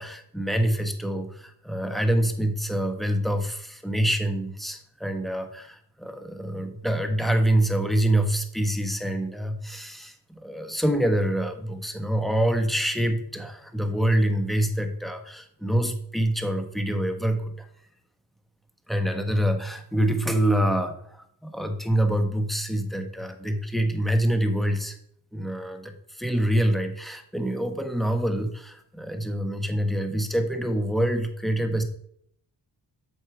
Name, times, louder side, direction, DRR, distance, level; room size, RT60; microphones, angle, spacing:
voice 1, 0.0-17.7 18.9-25.0 25.3-31.8, right 1 dB, ahead, 6 dB, 1.3 m, -26 dB
7.2 x 4.6 x 4.9 m, 0.67 s
cardioid pair, 55°, 43 cm